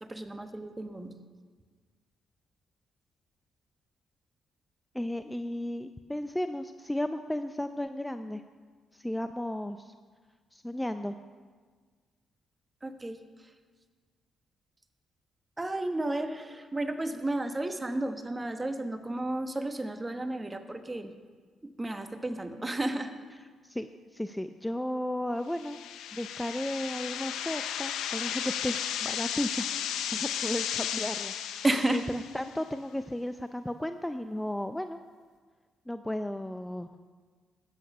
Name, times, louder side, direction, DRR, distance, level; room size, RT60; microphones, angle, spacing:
voice 1, 0.0-1.1 12.8-13.2 15.6-21.1 21.6-23.1 31.6-32.0, right 1 dB, 20° right, 8 dB, 1.2 m, -32 dB
voice 2, 4.9-8.4 8.9-9.9 10.5-11.2 23.6-25.8 26.1-35.0 35.9-36.9, left 1 dB, 10° left, 9 dB, 0.5 m, -34 dB
sound 1, 25.5-32.5, left 9 dB, 80° left, 0.6 m, -34 dB
12.5 x 8.9 x 5.5 m, 1.5 s
supercardioid pair, 55°, 0 cm